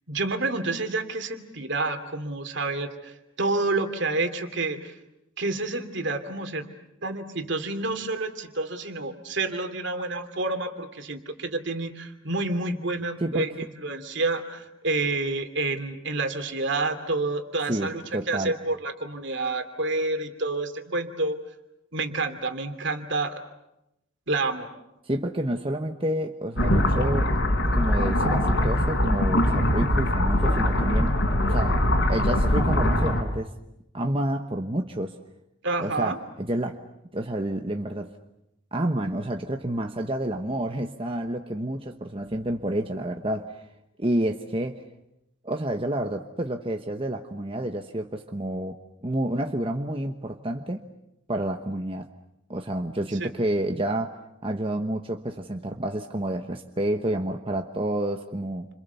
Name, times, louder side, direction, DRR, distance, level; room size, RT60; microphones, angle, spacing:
voice 1, 0.1-4.9 5.4-6.7 7.0-13.5 13.8-18.0 18.3-21.4 21.9-23.4 24.3-24.7 35.6-36.2 53.2-53.3, right 2 dB, 60° right, 7 dB, 2.7 m, -29 dB
voice 2, 13.2-13.5 17.7-18.5 25.0-27.3 27.7-31.1 31.5-31.8 32.1-33.5 33.9-35.1 35.8-36.8 37.1-38.1 38.7-43.7 44.0-44.8 45.4-50.9 51.3-52.1 52.5-58.7, right 1 dB, 25° right, 4 dB, 1.1 m, -29 dB
sound 1, 26.6-33.2, left 1 dB, 60° left, 4.6 m, -22 dB
29.5 x 27.0 x 7.0 m, 0.88 s
head